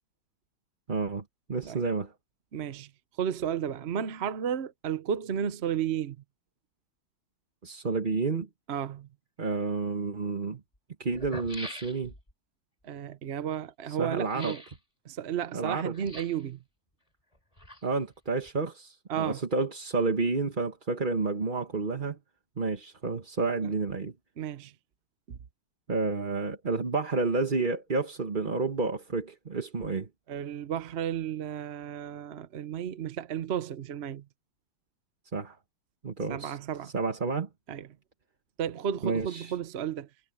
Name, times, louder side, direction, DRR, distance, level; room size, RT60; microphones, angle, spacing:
voice 1, 0.9-1.2 1.5-2.1 7.6-8.5 9.4-10.6 11.0-12.1 13.9-14.6 15.5-15.9 17.8-22.2 22.6-24.1 25.9-30.1 35.3-35.6 36.0-36.6 36.8-37.5 39.0-39.5, right 4 dB, 30° right, 1.3 m, -30 dB
voice 2, 2.5-2.9 3.2-6.2 8.7-9.1 12.8-14.6 15.0-16.6 19.1-19.5 23.6-23.7 24.4-24.7 25.3-25.4 30.3-34.2 36.3-36.9 37.7-37.9 38.6-40.1, right 9 dB, 55° right, 0.7 m, -33 dB
sound 1, 9.8-9.9 10.7-10.8 11.1-12.3 14.3-14.8 15.9-16.5 17.3-18.1 18.4-18.5, left 1 dB, 15° left, 5.6 m, -44 dB
omnidirectional pair, 2.1 m